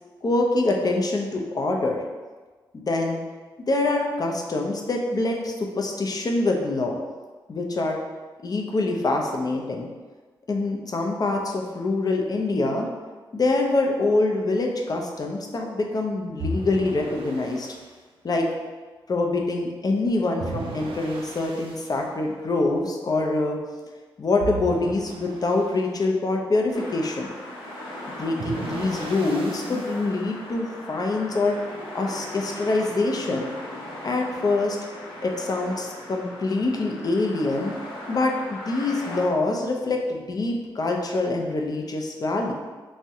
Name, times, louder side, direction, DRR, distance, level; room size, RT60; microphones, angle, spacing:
voice 1, 0.2-2.0 2.7-3.2 3.7-7.0 7.5-8.0 8.4-9.9 10.5-12.9 13.3-17.7 18.2-18.5 19.1-23.8 24.2-27.3 28.1-31.6 31.9-33.5 34.0-34.8 35.2-37.7 38.1-42.5, left 2 dB, 45° left, 1 dB, 0.5 m, -25 dB
sound 1, 16.4-17.8 20.4-21.9 24.4-25.8 28.4-30.0, right 2 dB, 90° right, 0.4 m, -35 dB
sound 2, 26.7-39.2, left 1 dB, 85° left, 0.7 m, -38 dB
2.7 x 2.1 x 3.5 m, 1.4 s
cardioid pair, 60°, 9 cm